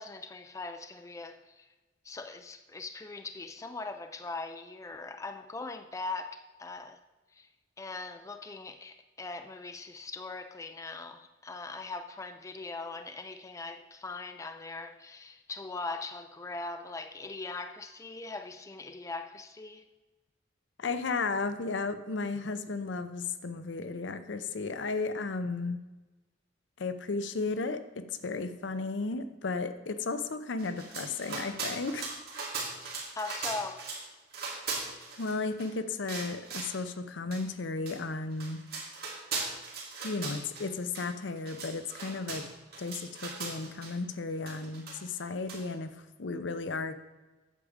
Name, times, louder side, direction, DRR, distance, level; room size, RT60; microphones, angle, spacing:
voice 1, 0.0-1.7 2.0-7.0 7.3-7.5 7.8-19.9 33.1-33.9, left 3 dB, 15° left, 0.3 m, -40 dB
voice 2, 20.8-25.8 26.8-27.8 28.1-32.1 35.2-38.6 40.0-42.4 42.8-45.9 46.2-46.9, left 3 dB, 70° left, 0.6 m, -34 dB
sound 1, 30.6-34.0 34.3-35.7 36.1-36.8 37.3-37.4 37.9-38.0 38.3-40.7 40.9-41.1 41.4-43.9 44.5-45.2 45.5-45.6, right 4 dB, 55° right, 2.3 m, -39 dB
8.4 x 4.9 x 7.2 m
head